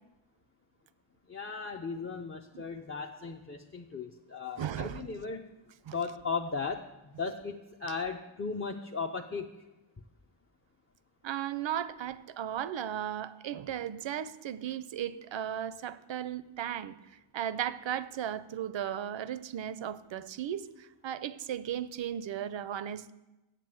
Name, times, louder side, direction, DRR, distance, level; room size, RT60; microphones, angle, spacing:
voice 1, 1.3-5.4 5.9-9.5, left 5 dB, 30° left, 2 dB, 0.5 m, -36 dB
voice 2, 4.6-5.1 5.9-6.0 11.2-17.0 17.3-23.1, right 10 dB, 65° right, 15 dB, 0.6 m, -36 dB
7.6 x 7.5 x 7.6 m, 1.0 s
wide cardioid pair, 70°, 48 cm